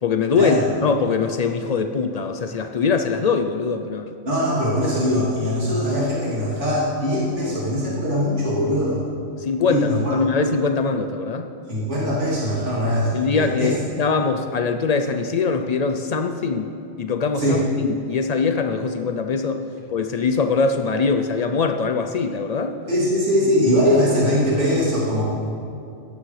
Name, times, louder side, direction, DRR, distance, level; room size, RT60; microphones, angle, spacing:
voice 1, 0.0-4.1 9.4-11.5 13.1-16.7 17.0-22.8, left 4 dB, 85° left, 6 dB, 0.3 m, -22 dB
voice 2, 4.2-9.0 9.7-10.1 11.7-13.7 17.4-17.6 22.9-25.2, equal, 60° right, -9 dB, 3.3 m, -21 dB
16.0 x 12.0 x 3.3 m, 2.5 s
omnidirectional pair, 1.4 m